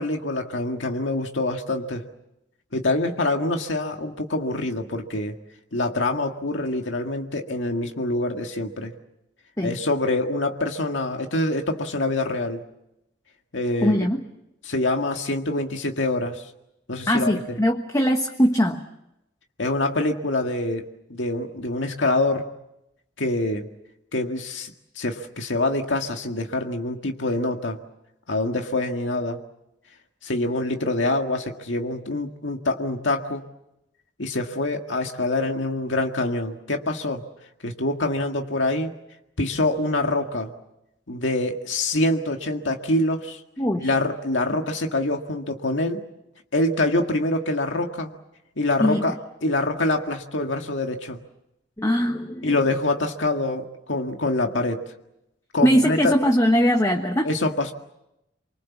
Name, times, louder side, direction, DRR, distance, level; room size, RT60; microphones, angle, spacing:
voice 1, 0.0-2.0 2.7-5.3 5.7-8.9 9.6-12.6 13.5-14.1 14.6-16.4 16.9-17.6 19.6-22.5 23.2-23.7 24.1-27.8 28.3-29.4 30.2-33.4 34.2-37.2 37.6-38.9 39.4-40.5 41.1-43.4 43.8-46.0 46.5-48.1 48.6-49.2 49.4-51.2 52.4-54.8 55.5-56.1 57.2-57.7, left 2 dB, 90° left, 4 dB, 1.9 m, -25 dB
voice 2, 13.8-14.2 17.1-18.8 43.6-43.9 48.8-49.1 51.8-52.6 55.6-57.3, equal, 20° left, 3 dB, 1.3 m, -21 dB
29.0 x 24.0 x 7.4 m, 0.87 s
head